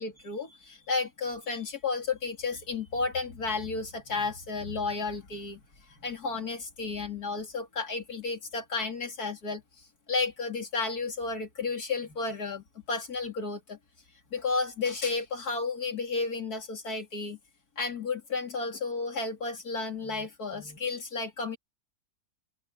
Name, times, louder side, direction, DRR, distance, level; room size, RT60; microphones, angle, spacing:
voice 1, 0.0-5.6 5.9-9.6 10.1-13.8 14.3-17.4 17.8-21.6, left 4 dB, 85° left, 3.6 m, -32 dB
omnidirectional pair, 1.6 m